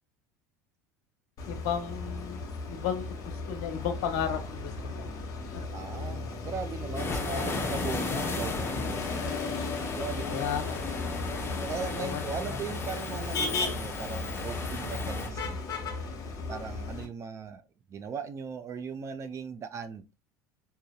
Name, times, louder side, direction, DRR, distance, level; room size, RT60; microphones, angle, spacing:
Motor vehicle (road), 1.4-17.1, left 3 dB, 40° left, 1.1 m, -35 dB
voice 1, 1.5-5.1 7.2-7.4 10.2-10.8 11.9-12.6, left 8 dB, 60° left, 0.7 m, -34 dB
voice 2, 5.7-9.1 9.9-10.6 11.6-15.6 16.5-17.6 17.9-20.1, right 6 dB, 30° right, 0.4 m, -38 dB
sound 1, 6.9-15.3, left 3 dB, 25° left, 0.7 m, -36 dB
3.8 x 2.6 x 2.3 m
figure-of-eight pair, 70°, 9 cm